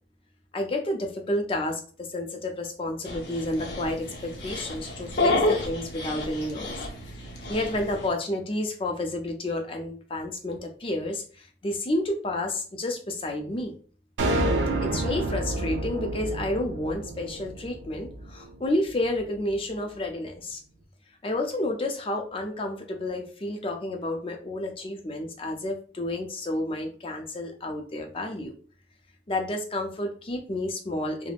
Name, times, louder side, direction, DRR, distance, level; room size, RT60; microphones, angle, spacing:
voice 1, 0.5-6.8 7.5-13.7 14.8-20.6 21.2-28.5 29.3-31.3, left 1 dB, 30° left, 3 dB, 0.4 m, -30 dB
Dog, 3.1-8.1, left 2 dB, 75° left, 0.7 m, -30 dB
sound 1, 14.2-18.6, right 1 dB, 85° right, 0.4 m, -29 dB
3.3 x 2.0 x 2.3 m, 0.41 s
head